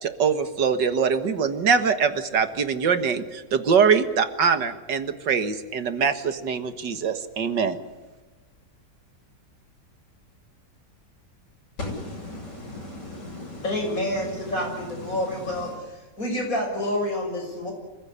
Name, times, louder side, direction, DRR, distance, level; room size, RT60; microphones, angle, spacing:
voice 1, 0.0-7.8, right 6 dB, 85° right, 9 dB, 2.2 m, -23 dB
voice 2, 11.8-15.8, left 2 dB, 80° left, 0 dB, 7.8 m, -37 dB
voice 3, 13.6-15.7 16.2-17.7, left 1 dB, 50° left, 1 dB, 7.1 m, -28 dB
26.0 x 15.5 x 9.9 m, 1.2 s
omnidirectional pair, 1.8 m